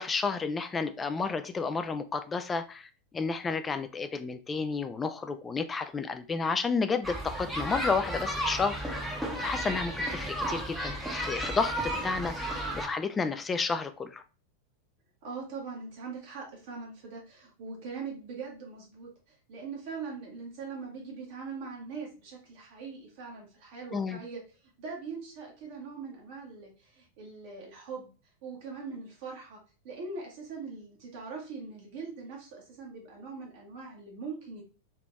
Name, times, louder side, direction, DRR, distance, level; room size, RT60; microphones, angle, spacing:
voice 1, 0.0-14.2 23.9-24.2, left 4 dB, 15° left, 0.3 m, -31 dB
sound 1, 7.0-12.9, right 1 dB, 5° right, 0.7 m, -33 dB
voice 2, 15.2-28.1 28.4-29.6 29.8-34.6, right 4 dB, 50° right, 1.0 m, -41 dB
3.3 x 2.9 x 2.3 m
figure-of-eight pair, 90°, 0 cm